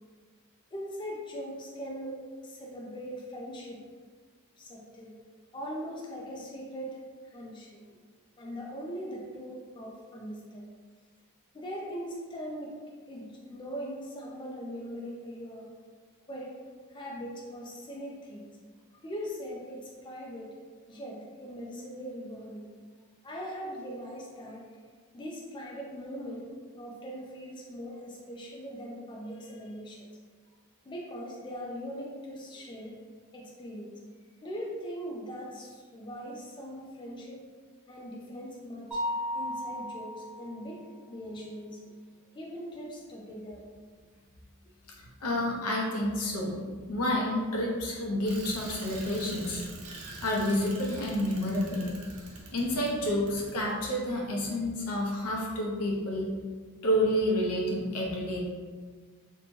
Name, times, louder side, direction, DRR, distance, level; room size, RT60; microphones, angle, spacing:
voice 1, 0.7-3.8 4.6-5.2 5.5-7.0 7.2-7.8 8.4-10.7 11.5-12.7 13.1-15.7 16.3-16.6 16.9-18.5 19.0-20.6 20.9-22.7 23.2-24.7 25.1-30.1 30.9-33.0 33.3-33.9 34.4-37.4 37.9-39.0 39.3-41.8 42.2-43.6, equal, 20° left, -3 dB, 0.3 m, -40 dB
Mallet percussion, 38.9-40.7, left 1 dB, 5° right, 0.7 m, -34 dB
voice 2, 45.0-46.5 46.9-49.6 50.2-51.9 52.5-56.3 56.8-58.4, left 1 dB, 80° left, -2 dB, 0.6 m, -29 dB
Bicycle, 48.3-53.8, right 2 dB, 70° right, 0.5 m, -45 dB
2.7 x 2.1 x 3.0 m, 1.5 s
head